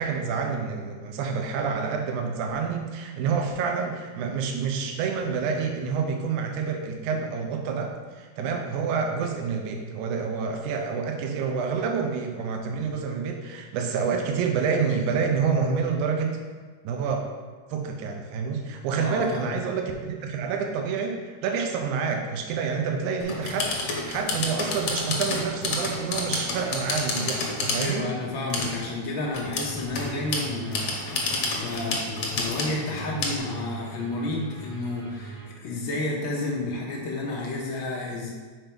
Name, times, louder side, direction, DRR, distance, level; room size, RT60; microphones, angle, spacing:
voice 1, 0.0-7.9 8.2-16.4 16.8-17.3 17.7-28.1, right 5 dB, 80° right, 3 dB, 2.1 m, -28 dB
voice 2, 18.9-19.6 27.8-38.3, left 2 dB, 80° left, -2 dB, 1.1 m, -31 dB
sound 1, 23.2-27.9 28.5-28.8 29.3-33.4, left 3 dB, 60° left, 1.9 m, -29 dB
sound 2, 29.6-35.5, right 2 dB, 60° right, 1.0 m, -41 dB
5.9 x 4.5 x 5.2 m, 1.4 s
omnidirectional pair, 3.5 m